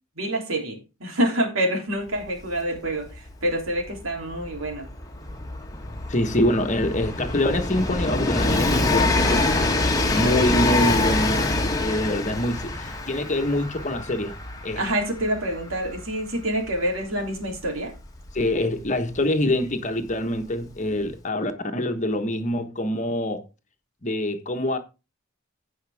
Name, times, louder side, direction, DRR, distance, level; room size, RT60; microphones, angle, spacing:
voice 1, 0.2-4.9 9.1-9.4 10.1-10.4 14.8-17.9, right 1 dB, 75° right, 3.3 m, -27 dB
Train, 2.2-2.3 2.5-19.1 20.1-20.2, left 2 dB, 15° left, 1.5 m, -26 dB
voice 2, 6.1-9.4 10.1-11.5 11.8-14.4 14.6-14.8 18.3-23.4 24.0-24.8, left 1 dB, 35° left, 1.3 m, -25 dB
16.0 x 5.7 x 3.5 m
head